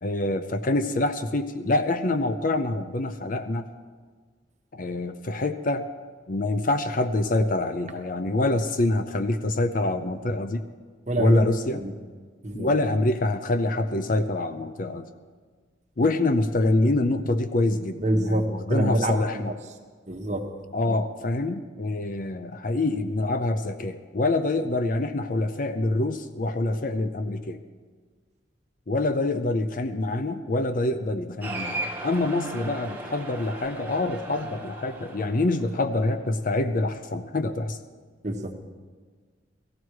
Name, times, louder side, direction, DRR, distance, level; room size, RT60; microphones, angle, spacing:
voice 1, 0.0-3.7 4.7-5.9 6.3-10.7 11.2-11.8 12.5-15.1 16.0-19.5 20.7-27.6 28.9-37.8, left 2 dB, 45° left, 10 dB, 0.6 m, -26 dB
voice 2, 11.1-11.4 11.8-11.9 12.4-12.7 18.0-19.4 20.1-20.5 38.2-38.5, right 1 dB, 35° right, 3 dB, 1.2 m, -26 dB
Cheering, 31.4-36.2, right 2 dB, 10° right, 1.5 m, -37 dB
18.0 x 14.5 x 4.7 m, 1.5 s
head